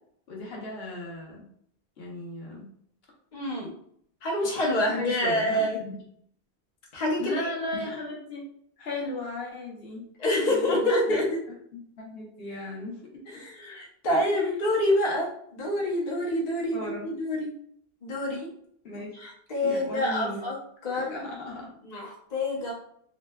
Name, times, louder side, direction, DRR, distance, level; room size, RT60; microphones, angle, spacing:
voice 1, 0.3-1.4 2.0-2.7 4.4-4.6 4.8-5.9 7.2-8.4 8.8-10.0 10.4-11.2 12.0-13.0 14.1-14.6 16.7-17.1 18.8-19.1 19.6-20.4 20.9-21.7, left 2 dB, 65° left, -2 dB, 1.0 m, -36 dB
voice 2, 3.3-3.7 4.2-5.8 6.9-7.5 10.2-11.4 13.3-17.5 18.0-18.5 19.2-20.6 20.8-21.1 21.8-22.7, left 1 dB, 45° left, -3 dB, 0.8 m, -27 dB
3.2 x 2.8 x 2.2 m, 0.66 s
omnidirectional pair, 1.1 m